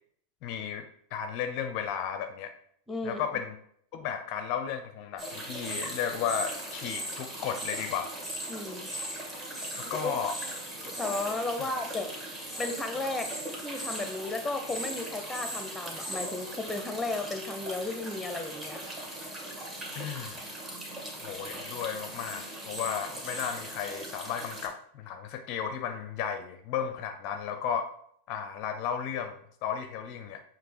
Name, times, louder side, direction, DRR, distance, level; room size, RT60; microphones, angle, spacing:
voice 1, 0.4-0.9 1.1-2.5 3.0-3.5 3.9-8.1 9.9-10.4 11.6-11.7 19.9-20.4 21.2-27.9 28.3-30.4, left 8 dB, 40° left, 7 dB, 0.5 m, -34 dB
voice 2, 2.9-3.2 8.5-8.9 10.0-10.1 11.0-12.1 12.6-18.8, left 2 dB, 5° left, 7 dB, 0.8 m, -34 dB
sound 1, 5.2-24.7, right 1 dB, 20° right, 1.6 m, -39 dB
7.4 x 3.0 x 4.4 m, 0.66 s
figure-of-eight pair, 90°, 0 cm